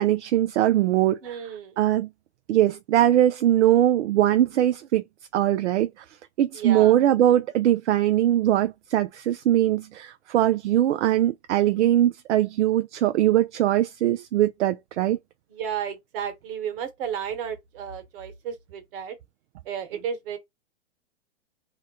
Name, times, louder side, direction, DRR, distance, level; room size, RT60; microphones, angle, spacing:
voice 1, 0.0-1.4 1.8-2.1 2.5-5.0 5.3-5.9 6.4-15.2, right 12 dB, 70° right, 0.5 m, -21 dB
voice 2, 1.2-1.8 6.5-6.9 15.5-19.2 19.6-20.4, right 8 dB, 50° right, 1.4 m, -33 dB
2.9 x 2.2 x 2.9 m
hypercardioid pair, 130°, 36 cm